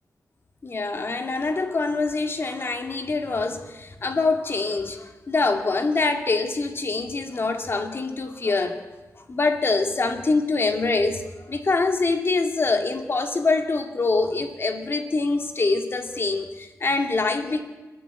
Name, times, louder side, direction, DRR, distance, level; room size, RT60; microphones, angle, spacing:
voice 1, 0.6-8.8 9.3-11.2 11.5-17.6, left 3 dB, 40° left, 5 dB, 2.3 m, -24 dB
29.0 x 11.0 x 9.4 m, 1.2 s
wide cardioid pair, 155°, 6 cm